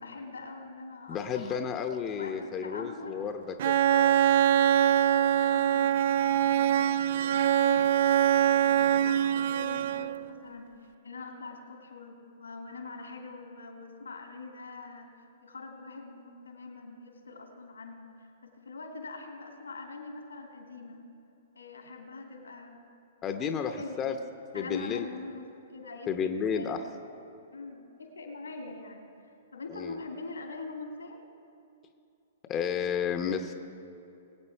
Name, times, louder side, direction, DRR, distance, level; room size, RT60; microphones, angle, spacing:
voice 1, 0.0-1.6 2.2-3.3 4.4-15.1 15.4-21.0 21.5-22.8 23.3-24.1 24.5-25.5 25.7-26.8 27.5-31.2, left 3 dB, 90° left, 2 dB, 2.4 m, -43 dB
voice 2, 1.1-4.2 23.2-24.1 24.5-25.1 26.1-26.8 29.7-30.0 32.5-33.5, left 7 dB, 25° left, 5 dB, 0.8 m, -32 dB
Bowed string instrument, 3.6-10.3, right 10 dB, 60° right, 0.4 m, -24 dB
21.5 x 8.3 x 4.5 m, 2.7 s
hypercardioid pair, 120°, 0 cm